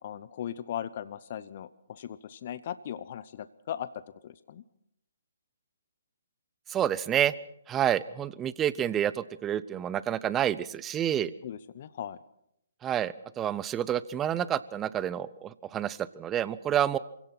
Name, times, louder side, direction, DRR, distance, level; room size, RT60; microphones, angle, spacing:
voice 1, 0.0-3.9 4.2-4.6 11.4-12.2, left 10 dB, 45° left, 15 dB, 0.8 m, -38 dB
voice 2, 6.7-7.3 7.7-11.3 12.8-17.0, right 10 dB, 15° right, 18 dB, 0.7 m, -29 dB
26.5 x 17.5 x 6.0 m, 0.78 s
figure-of-eight pair, 135°, 0 cm